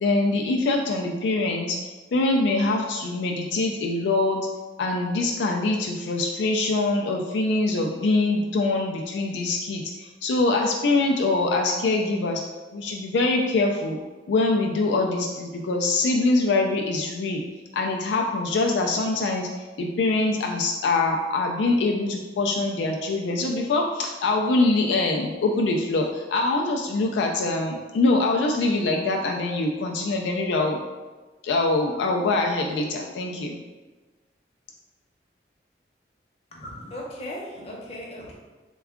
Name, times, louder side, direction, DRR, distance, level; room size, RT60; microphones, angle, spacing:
voice 1, 0.0-1.8 2.1-4.5 4.8-12.4 12.7-14.0 14.3-17.4 17.7-19.5 19.8-30.8 31.4-33.6, left 2 dB, 80° left, 1 dB, 0.3 m, -24 dB
voice 2, 36.5-38.3, left 1 dB, 35° left, -3 dB, 0.7 m, -37 dB
3.4 x 2.2 x 3.5 m, 1.2 s
head